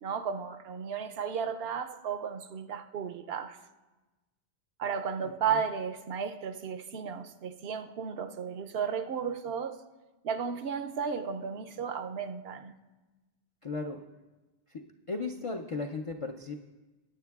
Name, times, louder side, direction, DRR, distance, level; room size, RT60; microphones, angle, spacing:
voice 1, 0.0-3.6 4.8-9.8 10.2-12.8, right 7 dB, 70° right, 0.8 m, -34 dB
voice 2, 13.6-14.0 14.7-16.6, left 3 dB, 45° left, 0.4 m, -36 dB
20.0 x 9.3 x 2.3 m
omnidirectional pair, 1.1 m